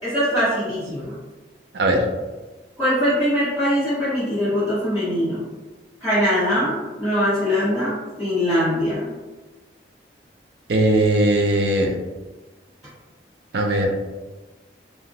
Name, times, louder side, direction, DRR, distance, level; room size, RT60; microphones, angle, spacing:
voice 1, 0.0-1.1 2.8-5.4 6.0-9.1, equal, ahead, -14 dB, 1.0 m, -22 dB
voice 2, 10.7-12.0 13.5-13.9, right 1 dB, 65° right, 2 dB, 0.4 m, -19 dB
2.9 x 2.2 x 2.7 m, 1.2 s
head